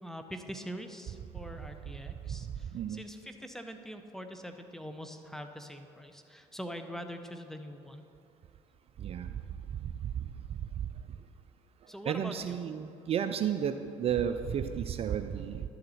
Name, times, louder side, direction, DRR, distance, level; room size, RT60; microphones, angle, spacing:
voice 1, 0.0-8.0 11.9-12.6, equal, 5° left, 6 dB, 0.8 m, -43 dB
voice 2, 12.1-13.7 14.0-15.6, right 8 dB, 45° right, 9 dB, 0.5 m, -32 dB
11.5 x 6.6 x 4.2 m, 2.5 s
hypercardioid pair, 65°, 14 cm